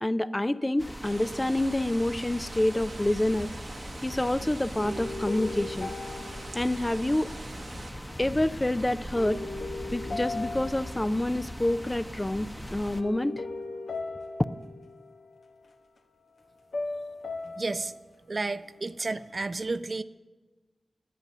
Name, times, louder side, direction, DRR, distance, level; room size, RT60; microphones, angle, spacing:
voice 1, 0.0-3.5 4.0-5.9 6.5-7.3 8.2-9.4 9.9-13.4, left 1 dB, 20° left, 13 dB, 0.4 m, -27 dB
sound 1, 0.8-13.0, equal, 5° left, 0.9 m, -40 dB
sound 2, 1.0-7.9, right 3 dB, 75° right, 1.1 m, -46 dB
sound 3, 3.7-4.4 4.8-7.5 9.1-11.7 12.0-12.4 13.0-15.7 16.7-18.2, left 2 dB, 80° left, 1.3 m, -38 dB
voice 2, 17.6-17.9 18.3-20.0, right 3 dB, 45° right, 13 dB, 0.4 m, -31 dB
11.0 x 9.1 x 6.8 m, 1.2 s
wide cardioid pair, 70°, 0 cm